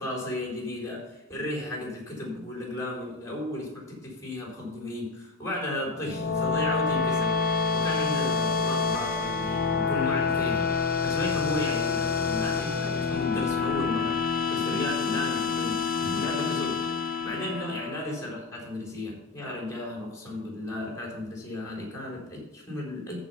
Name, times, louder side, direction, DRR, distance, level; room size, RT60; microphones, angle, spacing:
voice 1, 0.0-23.2, left 1 dB, 15° left, -2 dB, 4.2 m, -34 dB
sound 1, 5.9-18.3, left 5 dB, 45° left, 0.8 m, -27 dB
14.0 x 5.0 x 5.6 m, 0.94 s
head